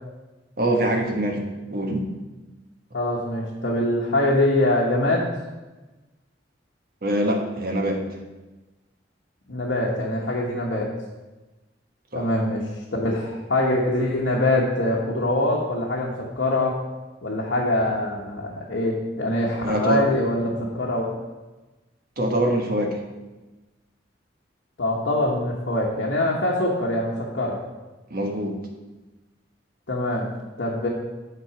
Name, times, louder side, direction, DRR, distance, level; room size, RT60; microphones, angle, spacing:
voice 1, 0.6-2.1 7.0-8.0 12.1-12.3 19.6-20.0 22.2-23.0 28.1-28.6, right 1 dB, 50° right, 1 dB, 1.2 m, -24 dB
voice 2, 2.9-5.3 9.5-10.9 12.1-12.6 12.9-16.8 17.2-21.1 24.8-27.6 29.9-30.3 30.6-30.9, left 1 dB, 65° left, -5 dB, 1.2 m, -23 dB
8.7 x 3.9 x 5.9 m, 1.1 s
head